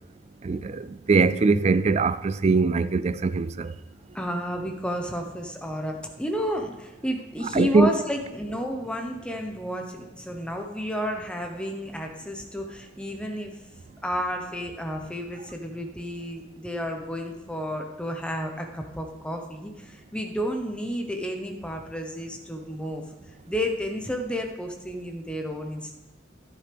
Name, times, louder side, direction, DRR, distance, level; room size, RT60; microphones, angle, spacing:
voice 1, 0.4-3.7 7.5-8.0, right 4 dB, 35° right, 0.3 m, -22 dB
voice 2, 4.1-13.6 14.0-23.0 23.5-25.9, equal, 5° left, 1.0 m, -31 dB
11.5 x 10.0 x 3.5 m
head